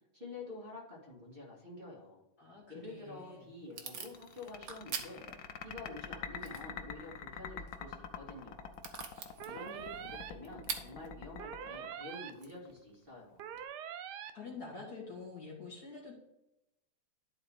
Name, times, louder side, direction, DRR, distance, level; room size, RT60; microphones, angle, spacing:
voice 1, 0.1-2.2 2.7-5.3 5.6-8.8 9.4-13.5, left 2 dB, 25° right, -5 dB, 2.6 m, -48 dB
voice 2, 2.4-3.5 14.3-16.2, left 4 dB, 45° left, -4 dB, 2.0 m, -47 dB
Packing tape duct tape / Tearing, 2.9-13.6, right 6 dB, 55° right, 1.1 m, -48 dB
sound 1, 4.0-12.7, left 7 dB, 80° left, 0.8 m, -45 dB
sound 2, 9.4-10.3 11.4-12.3 13.4-14.3, right 9 dB, 85° right, 0.9 m, -44 dB
11.5 x 3.8 x 4.8 m, 0.87 s
omnidirectional pair, 2.4 m